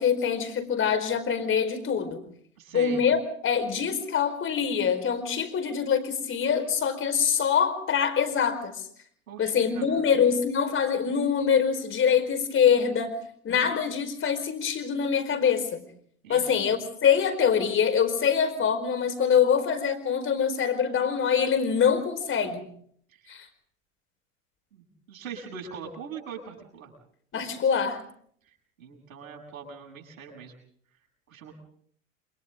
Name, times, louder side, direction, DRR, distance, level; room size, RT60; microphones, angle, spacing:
voice 1, 0.0-2.2 2.7-8.8 9.4-15.8 16.3-22.6 23.3-23.5 27.3-28.0, left 7 dB, 30° left, 9 dB, 4.8 m, -24 dB
voice 2, 2.6-3.0 9.3-10.1 16.2-16.7 23.1-23.4 24.7-26.9 28.8-30.5 31.3-31.5, right 6 dB, 70° right, 1 dB, 8.0 m, -42 dB
29.5 x 26.0 x 3.8 m, 0.62 s
figure-of-eight pair, 85°, 42 cm